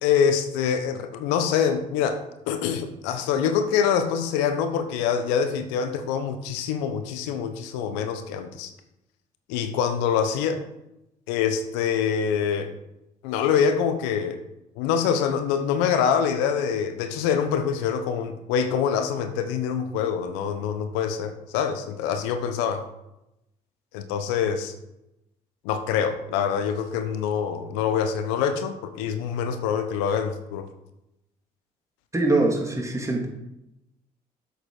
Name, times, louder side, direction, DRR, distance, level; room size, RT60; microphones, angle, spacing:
voice 1, 0.0-8.7 9.5-10.6 11.3-12.7 13.2-14.4 14.8-22.8 23.9-24.7 25.6-30.7, left 7 dB, 80° left, 9 dB, 0.9 m, -25 dB
voice 2, 32.1-33.3, right 2 dB, 15° right, 1 dB, 2.7 m, -23 dB
8.0 x 6.5 x 4.9 m, 0.88 s
hypercardioid pair, 55°, 18 cm